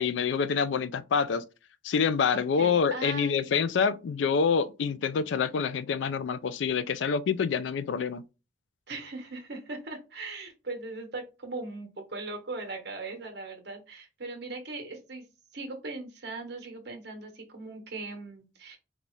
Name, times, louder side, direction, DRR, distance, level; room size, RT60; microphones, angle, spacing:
voice 1, 0.0-1.5 1.8-8.2, left 6 dB, 80° left, 0.4 m, -27 dB
voice 2, 2.3-3.6 8.9-15.3 15.5-18.8, right 3 dB, 65° right, 1.0 m, -39 dB
4.0 x 2.3 x 3.1 m
head